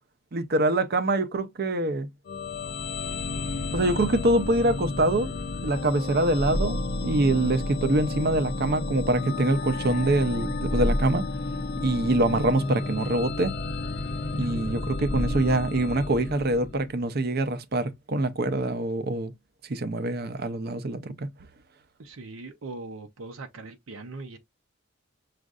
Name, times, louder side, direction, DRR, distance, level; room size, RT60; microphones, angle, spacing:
voice 1, 0.3-2.1 3.7-5.3 5.6-11.3 11.8-13.5 14.3-19.3 19.7-21.3, right 2 dB, 50° right, 0.6 m, -25 dB
sound 1, 2.3-17.0, left 2 dB, 50° left, 0.5 m, -31 dB
voice 2, 14.3-14.8 22.0-24.4, right 3 dB, 85° right, 0.7 m, -40 dB
6.2 x 2.5 x 2.4 m
head